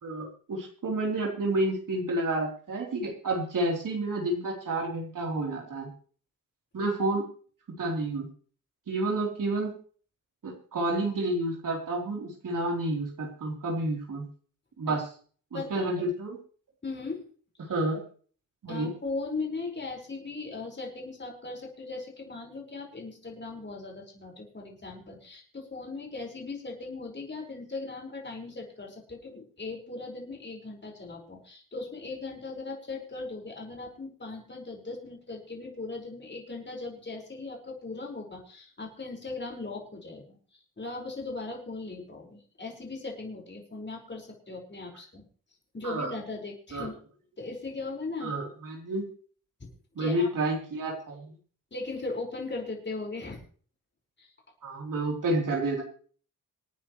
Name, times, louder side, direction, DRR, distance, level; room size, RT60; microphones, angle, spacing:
voice 1, 0.0-5.9 6.7-7.2 7.8-8.3 8.9-9.7 10.4-14.3 14.8-15.0 15.5-16.4 17.6-18.0 18.6-18.9 45.8-46.1 46.7-46.9 48.2-49.0 50.0-51.3 54.6-55.8, right 2 dB, 65° right, -1 dB, 3.7 m, -30 dB
voice 2, 15.5-15.9 16.8-17.2 18.7-45.2 45.7-46.9 47.4-48.3 49.6-49.7 50.0-50.3 51.7-53.4 54.2-54.3, left 3 dB, 30° left, 0 dB, 5.1 m, -38 dB
26.5 x 9.5 x 3.2 m, 0.44 s
cardioid pair, 95°, 34 cm